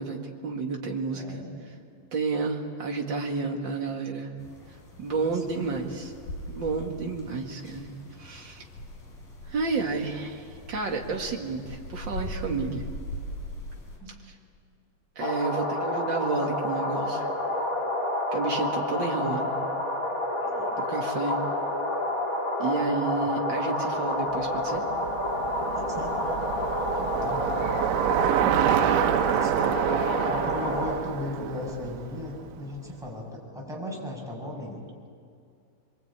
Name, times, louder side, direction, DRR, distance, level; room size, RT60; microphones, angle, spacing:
voice 1, 0.0-1.5 2.1-4.3 5.0-6.1 6.5-7.9 8.2-8.6 9.5-12.8 14.2-14.3 15.1-17.3 18.3-19.6 20.8-21.4 22.6-24.8, right 4 dB, 50° right, 1 dB, 1.3 m, -31 dB
voice 2, 1.1-1.6 5.5-5.8 14.0-14.1 20.4-20.7 25.7-26.1 26.9-27.8 29.3-29.7 30.0-34.8, left 2 dB, ahead, -3 dB, 6.3 m, -37 dB
sound 1, 4.4-14.0, left 1 dB, 55° left, 6.1 m, -41 dB
sound 2, 15.2-30.9, left 1 dB, 25° left, 2.4 m, -29 dB
Bicycle, 24.4-32.8, right 11 dB, 90° right, 3.2 m, -28 dB
25.5 x 23.5 x 8.8 m, 2.3 s
omnidirectional pair, 5.2 m